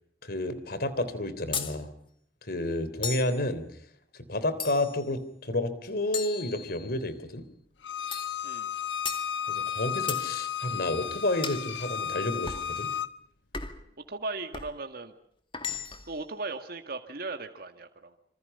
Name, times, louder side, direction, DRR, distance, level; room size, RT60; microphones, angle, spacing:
voice 1, 0.2-1.9 2.5-3.6 4.3-7.4 9.5-12.9, left 1 dB, 60° left, 13 dB, 3.4 m, -30 dB
sound 1, 1.5-1.8 3.0-3.4 4.6-5.0 6.1-7.0 8.1-8.4 9.0-9.3 10.1-10.3 11.4-11.7 12.5-12.7 13.5-13.9 14.5-14.7 15.5-16.1, left 6 dB, 30° left, 2.2 m, -36 dB
Bowed string instrument, 7.8-13.1, left 8 dB, 85° left, 1.1 m, -33 dB
voice 2, 8.4-8.7 14.1-15.1 16.1-18.2, right 3 dB, 55° right, 6 dB, 2.0 m, -37 dB
27.0 x 27.0 x 5.6 m, 0.67 s
head